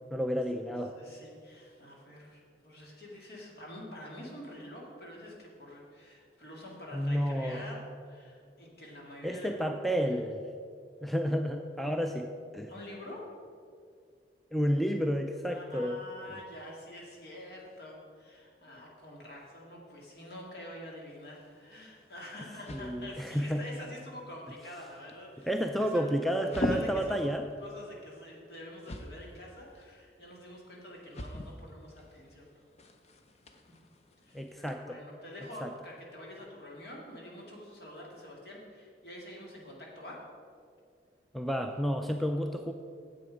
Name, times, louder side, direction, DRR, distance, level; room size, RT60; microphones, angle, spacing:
voice 1, 0.1-0.9 6.9-7.6 9.2-10.4 11.0-12.7 14.5-16.0 22.7-23.6 25.5-27.5 34.3-35.0 35.6-35.7 41.3-42.7, equal, ahead, 4 dB, 0.4 m, -31 dB
voice 2, 0.9-9.6 12.7-13.2 15.5-25.5 25.9-26.1 26.6-27.3 27.6-32.5 34.2-40.2, left 1 dB, 60° left, -2 dB, 2.2 m, -47 dB
sound 1, 21.3-34.7, left 1 dB, 35° left, 0.7 m, -43 dB
9.9 x 7.7 x 5.1 m, 2.2 s
head